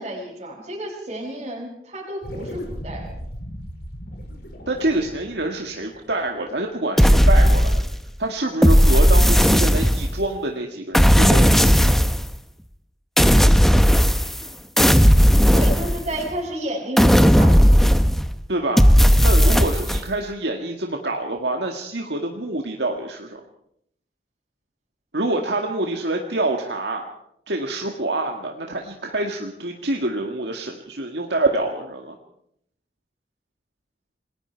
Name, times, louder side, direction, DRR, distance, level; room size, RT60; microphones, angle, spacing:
voice 1, 0.0-3.2 15.5-17.8 19.3-19.6, right 1 dB, 35° right, -5 dB, 5.1 m, -31 dB
sound 1, 2.2-6.9, equal, 60° left, 5.5 m, -37 dB
voice 2, 4.7-7.9 8.2-11.9 18.5-18.9 19.2-23.4 25.1-27.1 27.5-32.2, right 2 dB, 65° right, 2 dB, 1.9 m, -26 dB
sound 2, 7.0-8.1 8.6-10.2 10.9-12.3 13.2-14.5 14.8-16.4 17.0-18.3 18.8-20.0, equal, ahead, 0.8 m, -15 dB
28.0 x 20.0 x 4.6 m, 0.71 s
head